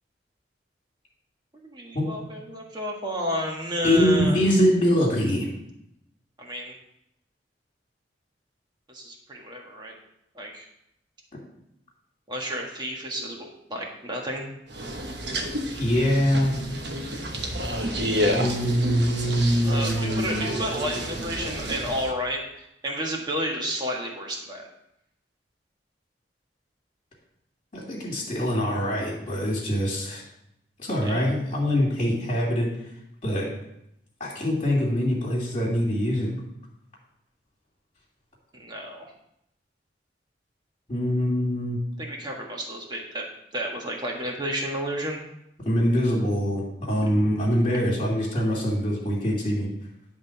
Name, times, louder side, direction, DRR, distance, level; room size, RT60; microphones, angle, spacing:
voice 1, 1.7-4.4 6.4-6.7 8.9-9.9 10.3-10.6 12.3-14.5 19.6-24.6 31.0-31.2 38.6-39.1 42.0-43.2 43.5-45.2 47.0-47.1, equal, 25° right, 0 dB, 1.5 m, -31 dB
voice 2, 3.8-5.5 15.8-16.6 18.3-20.5 27.7-30.2 30.8-32.7 33.2-33.5 34.2-36.3 40.9-41.8 45.6-49.7, equal, 35° left, -4 dB, 2.4 m, -24 dB
sound 1, 14.7-22.1, equal, 75° right, 1.1 m, -30 dB
10.5 x 3.8 x 5.9 m, 0.80 s
head